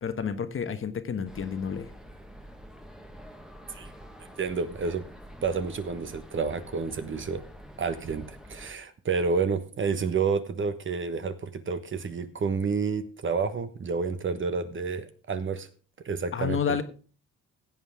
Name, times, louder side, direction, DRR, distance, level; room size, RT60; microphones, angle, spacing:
voice 1, 0.0-1.9 16.3-16.8, left 7 dB, 45° left, 10 dB, 1.2 m, -30 dB
sound 1, 1.2-8.7, equal, ahead, 1.4 m, -47 dB
voice 2, 4.2-5.0 5.4-7.4 7.8-15.7 16.0-16.8, right 5 dB, 40° right, 11 dB, 1.2 m, -30 dB
16.5 x 7.9 x 3.5 m, 0.38 s
cardioid pair, 90°, 30 cm